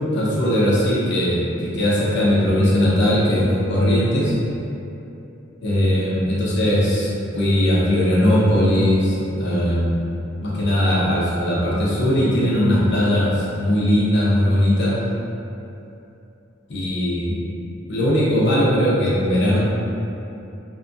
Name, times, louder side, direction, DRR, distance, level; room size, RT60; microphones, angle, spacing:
voice 1, 0.1-3.4 3.7-4.3 5.6-10.1 10.4-15.0 16.7-17.4 17.9-19.6, left 1 dB, 60° left, -6 dB, 0.6 m, -19 dB
2.6 x 2.3 x 2.5 m, 2.8 s
head